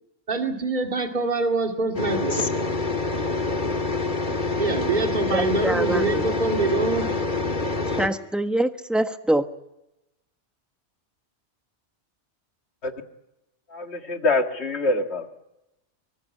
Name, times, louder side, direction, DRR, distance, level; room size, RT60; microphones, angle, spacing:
voice 1, 0.3-2.5 4.6-7.1, right 3 dB, 40° right, 3 dB, 2.4 m, -25 dB
sound 1, 1.9-8.1, left 3 dB, 45° left, 2.1 m, -26 dB
voice 2, 5.3-6.2 7.9-9.5, right 1 dB, ahead, 7 dB, 1.2 m, -25 dB
voice 3, 13.7-15.3, left 2 dB, 65° left, 5 dB, 2.2 m, -25 dB
24.5 x 18.5 x 8.7 m, 0.92 s
omnidirectional pair, 1.2 m